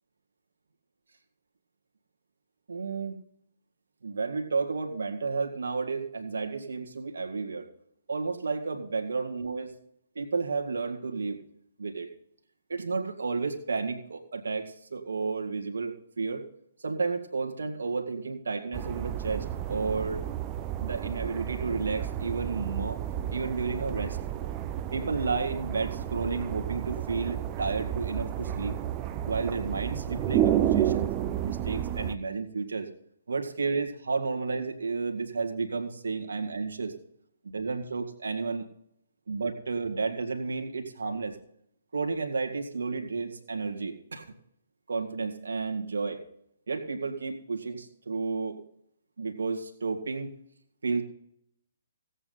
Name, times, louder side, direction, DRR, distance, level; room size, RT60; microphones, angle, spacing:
voice 1, 2.7-3.2 4.0-7.7 8.1-9.7 10.2-11.4 11.8-12.1 12.7-16.5 16.8-20.3 20.8-23.0 23.3-24.2 24.9-28.7 29.3-31.1 31.4-32.9 33.3-36.9 37.4-38.6 39.3-41.4 41.9-44.3 44.9-46.2 46.7-48.6 49.2-50.3 50.8-51.0, right 4 dB, 65° right, 4 dB, 1.8 m, -32 dB
sound 1, 18.7-32.2, right 11 dB, 25° right, 0.7 m, -31 dB
17.0 x 8.3 x 4.0 m, 0.72 s
figure-of-eight pair, 130°, 0 cm